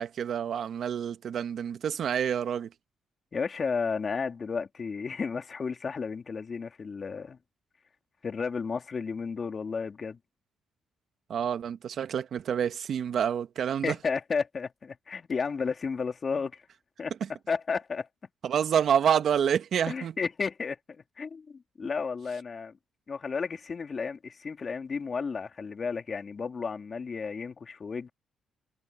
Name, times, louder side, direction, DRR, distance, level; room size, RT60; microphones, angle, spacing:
voice 1, 0.0-2.7 11.3-13.9 18.4-20.1, right 8 dB, 60° right, 1.6 m, -28 dB
voice 2, 3.3-7.4 8.2-10.2 13.8-16.6 17.0-17.1 17.5-18.1 19.9-22.8 23.1-28.1, left 5 dB, 40° left, 2.7 m, -33 dB
cardioid pair, 90°, 0 cm